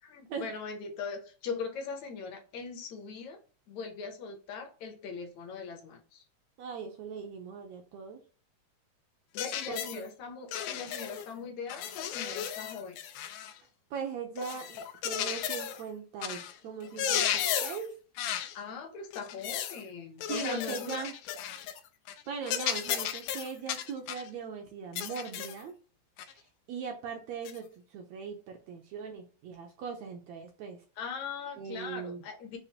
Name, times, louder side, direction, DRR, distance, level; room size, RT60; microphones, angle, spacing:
voice 1, 0.0-3.4 3.7-6.2 9.3-13.0 16.6-16.7 17.0-17.1 18.5-21.1 31.0-32.6, left 5 dB, 70° left, 3 dB, 2.0 m, -40 dB
voice 2, 6.6-8.2 9.7-10.0 13.9-17.9 20.3-21.1 22.3-25.7 26.2-27.6 27.9-30.8 31.6-32.2, right 6 dB, 75° right, 4 dB, 1.7 m, -40 dB
sound 1, 9.4-10.0 10.5-11.3 11.7-13.6 14.4-15.8 16.2-16.5 16.8-17.9 18.2-18.6 19.1-19.8 20.2-21.8 22.1-22.2 22.5-24.3 25.0-25.6 26.2-26.3 27.4-27.6, left 9 dB, 85° left, 2.2 m, -34 dB
7.1 x 2.6 x 2.8 m, 0.37 s
omnidirectional pair, 3.8 m